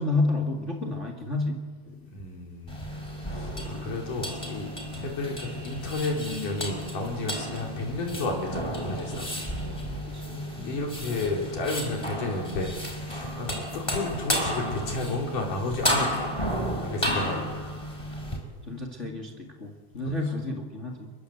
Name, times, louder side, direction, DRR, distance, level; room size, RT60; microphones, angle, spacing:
voice 1, 0.0-2.1 3.7-4.0 9.6-10.5 17.2-17.5 18.7-21.1, left 2 dB, 25° left, 2 dB, 2.2 m, -31 dB
voice 2, 2.1-2.9 3.2-9.3 10.5-12.7 13.0-16.4 16.8-17.6 20.0-20.1, left 2 dB, 75° left, 1 dB, 5.9 m, -32 dB
sound 1, 2.7-18.4, equal, 10° left, 4.8 m, -32 dB
30.0 x 21.0 x 8.0 m, 1.4 s
omnidirectional pair, 3.8 m